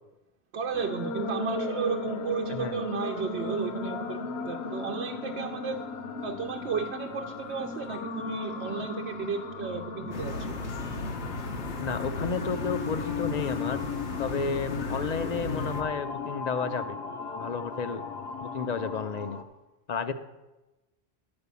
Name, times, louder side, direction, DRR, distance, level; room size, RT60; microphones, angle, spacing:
voice 1, 0.5-5.8 6.2-10.5, right 6 dB, 75° right, 3 dB, 0.9 m, -33 dB
sound 1, 0.7-19.4, left 3 dB, 75° left, 1.1 m, -36 dB
sound 2, 10.1-15.8, left 3 dB, 90° left, 1.4 m, -35 dB
voice 2, 11.8-13.8 14.2-17.0 17.4-18.0 18.4-19.4 19.9-20.1, left 5 dB, 50° left, 10 dB, 0.6 m, -32 dB
11.0 x 5.4 x 8.2 m, 1.1 s
omnidirectional pair, 1.1 m